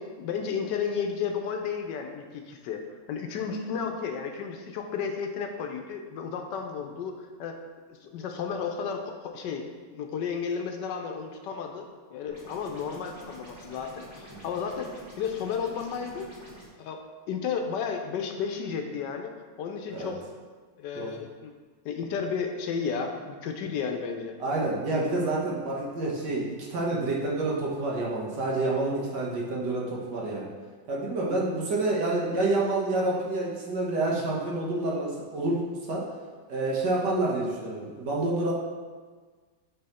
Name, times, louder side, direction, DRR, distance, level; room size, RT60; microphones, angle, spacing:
voice 1, 0.0-7.6 7.9-9.7 9.9-16.3 16.8-17.0 17.3-19.3 19.6-20.2 20.8-21.5 21.8-24.4, left 6 dB, 75° left, 4 dB, 1.2 m, -33 dB
sound 1, 12.3-16.7, right 1 dB, 20° right, 1.2 m, -47 dB
voice 2, 24.4-30.5 30.9-36.0 36.5-38.5, right 2 dB, 65° right, -4 dB, 1.7 m, -28 dB
7.6 x 3.5 x 4.2 m, 1.5 s
omnidirectional pair, 2.0 m